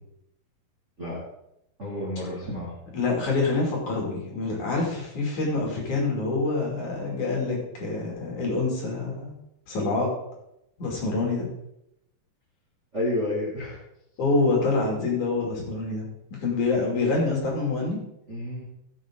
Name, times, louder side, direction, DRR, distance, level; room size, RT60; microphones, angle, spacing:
voice 1, 1.8-2.7 12.9-13.8 18.3-18.6, left 1 dB, 25° right, -6 dB, 2.0 m, -30 dB
voice 2, 2.9-9.3 9.7-10.1 10.8-11.5 14.2-18.0, left 3 dB, 50° left, -2 dB, 3.8 m, -26 dB
14.5 x 7.6 x 3.8 m, 0.81 s
omnidirectional pair, 4.7 m